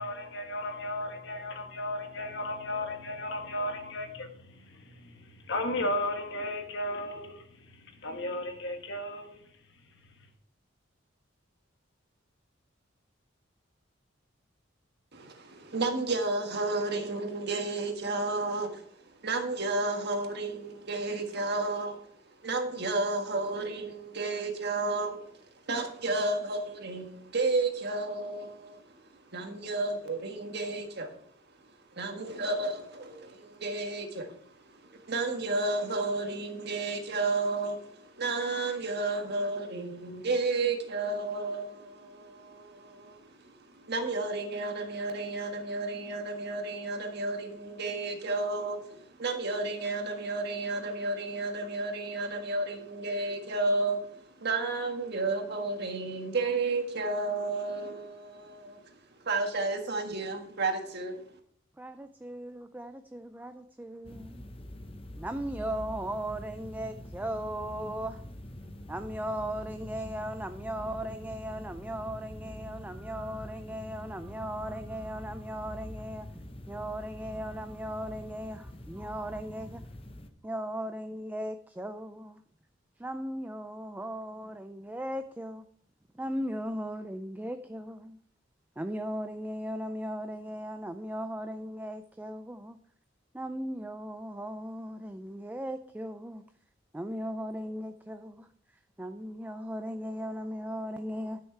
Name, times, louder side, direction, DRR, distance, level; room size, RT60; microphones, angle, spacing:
voice 1, 0.0-9.5 10.2-10.3, left 1 dB, 60° left, 1.5 m, -35 dB
voice 2, 15.1-31.2 31.9-59.0 59.2-61.2, right 3 dB, 55° right, 1.6 m, -32 dB
voice 3, 61.8-64.4 65.2-68.2 68.9-76.3 76.7-79.8 80.4-82.4 83.0-85.6 86.1-88.2 88.8-92.8 93.3-96.4 96.9-98.5 99.0-101.4, equal, 10° right, 0.4 m, -37 dB
sound 1, 64.0-80.3, left 1 dB, 30° left, 0.7 m, -45 dB
11.5 x 6.5 x 4.5 m
head